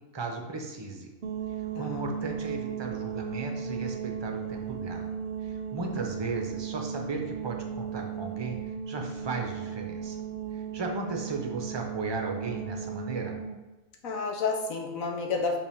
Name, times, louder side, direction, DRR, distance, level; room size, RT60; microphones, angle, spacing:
voice 1, 0.1-1.1 1.5-5.1 5.4-10.2 10.5-13.4, right 3 dB, 25° right, 2 dB, 0.6 m, -36 dB
sound 1, 1.2-13.6, right 7 dB, 70° right, 0.5 m, -36 dB
voice 2, 1.7-2.2 14.0-15.6, left 4 dB, 75° left, 1 dB, 1.4 m, -30 dB
5.5 x 5.2 x 3.5 m, 1.1 s
omnidirectional pair, 1.4 m